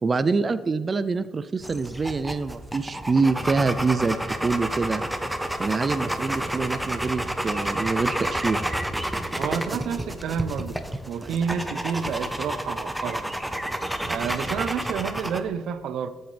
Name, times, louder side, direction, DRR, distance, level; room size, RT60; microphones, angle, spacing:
voice 1, 0.0-5.0 5.6-8.6, right 4 dB, 35° right, 13 dB, 0.4 m, -25 dB
sound 1, 1.6-15.4, right 1 dB, 5° right, 0.9 m, -30 dB
voice 2, 9.4-10.8 11.1-13.3 14.1-16.1, right 7 dB, 75° right, 13 dB, 0.6 m, -29 dB
13.0 x 7.9 x 3.3 m, 1.4 s
cardioid pair, 90°, 0 cm